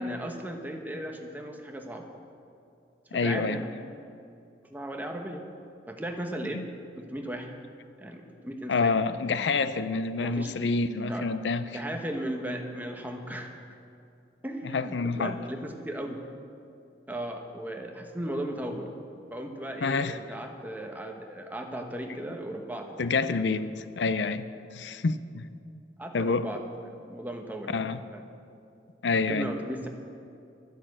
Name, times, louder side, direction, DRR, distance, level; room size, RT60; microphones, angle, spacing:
voice 1, 0.0-2.1 3.1-3.7 4.7-5.5 5.9-6.6 7.0-7.5 8.0-9.0 9.4-9.5 10.2-10.5 11.1-13.5 14.4-16.2 17.1-18.9 19.3-23.0 23.5-23.7 26.0-28.2 29.1-29.9, right 1 dB, 10° right, 3 dB, 1.2 m, -36 dB
voice 2, 3.1-3.6 6.5-6.6 8.7-11.7 14.6-15.4 19.8-20.2 23.0-25.5 26.1-26.5 27.7-28.0 29.0-29.5, left 4 dB, 90° left, 13 dB, 0.6 m, -28 dB
12.0 x 10.0 x 7.8 m, 2.5 s
head